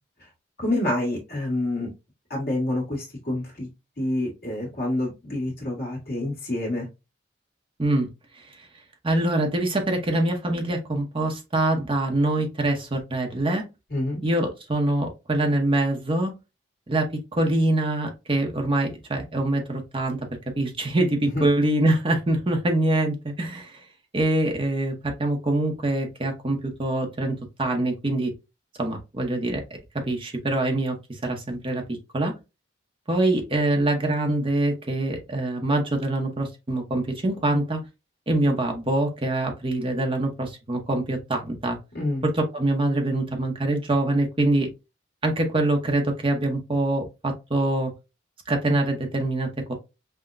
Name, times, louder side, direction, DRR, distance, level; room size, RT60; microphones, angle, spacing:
voice 1, 0.6-1.9 2.3-3.7 4.0-6.9 13.9-14.2 21.3-21.5 41.9-42.2, left 1 dB, 50° left, 1.5 m, -27 dB
voice 2, 8.3-8.7 9.0-13.6 14.2-16.3 16.9-20.3 20.6-23.8 24.1-28.3 28.8-29.6 29.9-32.3 33.1-37.8 38.3-41.8 42.2-44.7 45.2-47.9 48.5-49.7, right 1 dB, 30° right, 0.7 m, -24 dB
5.7 x 2.1 x 2.5 m
head